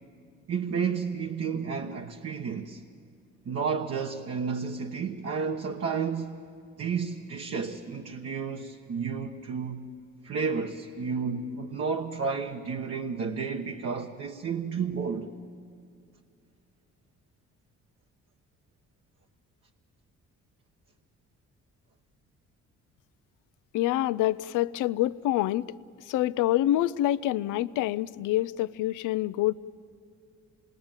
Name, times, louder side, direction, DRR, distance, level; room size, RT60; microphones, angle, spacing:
voice 1, 0.5-2.8 3.4-6.3 6.8-9.9 10.2-15.3, right 5 dB, 55° right, 1.2 m, -31 dB
voice 2, 23.7-25.7 26.1-29.5, left 14 dB, 85° left, 0.5 m, -26 dB
27.0 x 20.5 x 8.9 m
cardioid pair, 90°, 30 cm